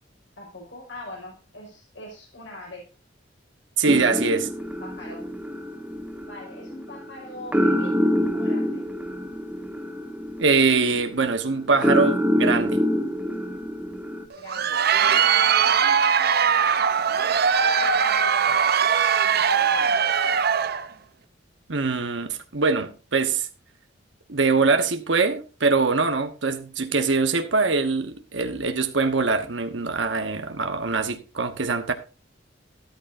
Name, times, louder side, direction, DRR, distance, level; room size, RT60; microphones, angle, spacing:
voice 1, 0.4-2.9 4.8-5.3 6.2-8.8 14.3-20.0, left 1 dB, 75° left, 5.8 m, -42 dB
voice 2, 3.8-4.5 10.4-12.8 21.7-23.5 24.3-31.9, right 4 dB, 75° right, 1.2 m, -23 dB
sound 1, 3.9-14.3, equal, 5° right, 1.6 m, -26 dB
Crowd, 14.3-20.9, right 7 dB, 55° right, 0.8 m, -21 dB
13.5 x 13.0 x 2.6 m
head